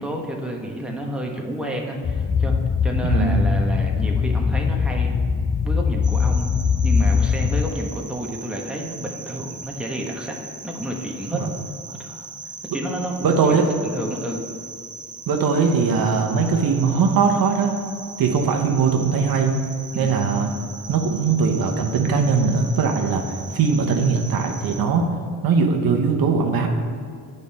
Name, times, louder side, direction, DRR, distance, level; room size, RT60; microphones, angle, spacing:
voice 1, 0.0-2.5 2.8-5.1 5.6-6.5 6.8-10.4 10.6-11.4 11.9-12.3 12.7-14.4 19.9-20.2, right 1 dB, ahead, 0 dB, 1.2 m, -30 dB
sound 1, 2.0-7.7, left 6 dB, 25° left, 0.4 m, -21 dB
voice 2, 3.0-3.5 11.3-11.5 13.2-13.7 15.3-17.8 18.2-19.5 19.9-20.5 20.9-25.1 25.4-26.7, right 5 dB, 60° right, 2 dB, 1.0 m, -20 dB
sound 2, 6.0-24.8, right 4 dB, 20° right, 0.8 m, -39 dB
8.4 x 5.4 x 4.2 m, 2.2 s
cardioid pair, 80°, 39 cm